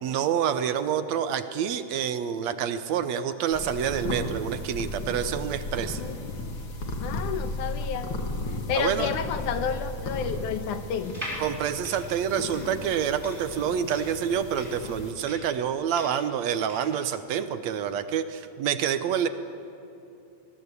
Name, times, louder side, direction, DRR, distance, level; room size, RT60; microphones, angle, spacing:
voice 1, 0.0-6.0 8.8-9.1 11.4-19.3, right 8 dB, 70° right, 11 dB, 2.0 m, -27 dB
sound 1, 3.5-15.1, left 2 dB, 45° left, 2.6 m, -35 dB
voice 2, 6.0-6.5 7.0-8.1 8.7-11.1, left 7 dB, 85° left, 9 dB, 2.7 m, -31 dB
sound 2, 11.0-17.0, equal, 15° right, 5.1 m, -41 dB
24.5 x 21.0 x 8.2 m, 2.8 s
omnidirectional pair, 3.5 m